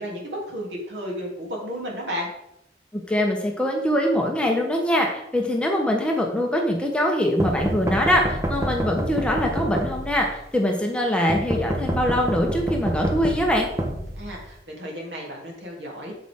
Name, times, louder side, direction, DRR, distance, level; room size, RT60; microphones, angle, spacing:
voice 1, 0.0-2.3 14.2-16.1, equal, 75° right, -2 dB, 3.0 m, -33 dB
voice 2, 2.9-13.7, equal, 5° left, 0 dB, 1.0 m, -23 dB
sound 1, 7.4-10.3 11.3-14.6, right 1 dB, 15° right, 0.9 m, -28 dB
8.3 x 7.6 x 3.6 m, 0.81 s
head